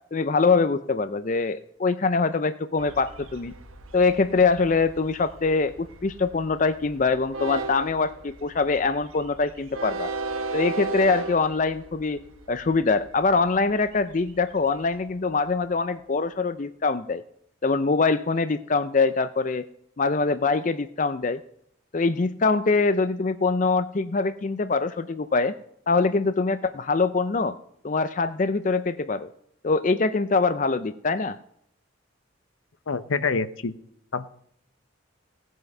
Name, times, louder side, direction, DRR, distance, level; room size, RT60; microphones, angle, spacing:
voice 1, 0.1-3.5 3.9-10.1 10.5-17.2 17.6-19.6 20.0-21.4 21.9-25.5 25.9-27.6 27.8-29.3 29.6-31.4, left 4 dB, 40° left, 11 dB, 0.4 m, -23 dB
Train, 2.8-15.8, right 3 dB, 85° right, 1.2 m, -37 dB
voice 2, 32.9-33.8 34.1-34.3, left 4 dB, 75° left, 13 dB, 0.7 m, -26 dB
17.0 x 8.0 x 5.5 m, 0.70 s
head